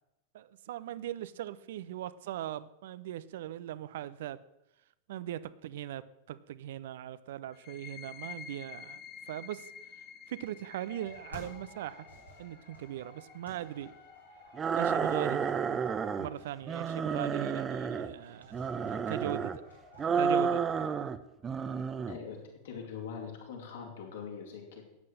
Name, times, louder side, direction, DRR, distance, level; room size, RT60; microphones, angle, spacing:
voice 1, 0.3-4.4 5.1-9.0 9.3-9.7 10.3-12.1 12.4-13.9 14.8-15.5 16.2-18.6 18.9-19.6 20.0-20.6, right 12 dB, 55° right, 16 dB, 0.6 m, -39 dB
sound 1, 7.5-14.9, left 8 dB, 35° left, 1.6 m, -50 dB
sound 2, 10.9-20.9, left 1 dB, 90° left, 5.5 m, -54 dB
sound 3, 14.6-16.3 16.7-18.1 18.5-19.6 20.0-21.2 21.4-22.2, right 6 dB, 20° right, 0.8 m, -31 dB
voice 2, 22.0-24.8, left 6 dB, 60° left, -1 dB, 4.2 m, -43 dB
13.5 x 9.5 x 6.5 m, 0.90 s
figure-of-eight pair, 90°, 0 cm